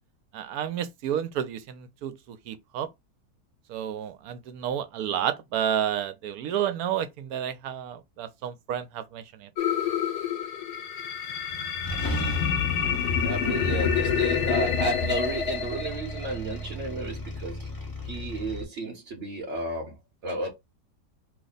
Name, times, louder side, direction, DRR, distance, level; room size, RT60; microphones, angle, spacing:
voice 1, 0.3-2.9 3.7-9.5, right 10 dB, 75° right, 1.0 m, -31 dB
sound 1, 9.6-16.6, left 7 dB, 85° left, 1.3 m, -27 dB
sound 2, 11.4-11.5 11.8-18.6, equal, 20° left, 0.6 m, -35 dB
voice 2, 13.2-17.7 18.0-20.5, right 2 dB, 55° right, 1.0 m, -33 dB
2.9 x 2.1 x 3.9 m
omnidirectional pair, 1.7 m